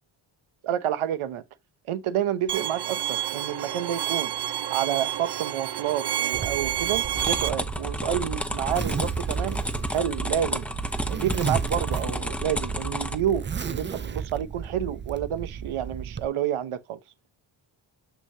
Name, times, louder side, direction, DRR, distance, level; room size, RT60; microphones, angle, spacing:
voice 1, 0.6-1.4 1.9-4.3 4.7-9.6 9.9-10.7 11.1-17.0, right 10 dB, 85° right, 1.0 m, -29 dB
Bowed string instrument, 2.5-7.5, right 11 dB, 55° right, 0.8 m, -29 dB
Zipper (clothing), 6.3-16.3, right 7 dB, 25° right, 0.4 m, -34 dB
sound 1, 7.1-13.2, equal, 5° left, 1.0 m, -31 dB
6.6 x 6.0 x 2.7 m
cardioid pair, 75°, 49 cm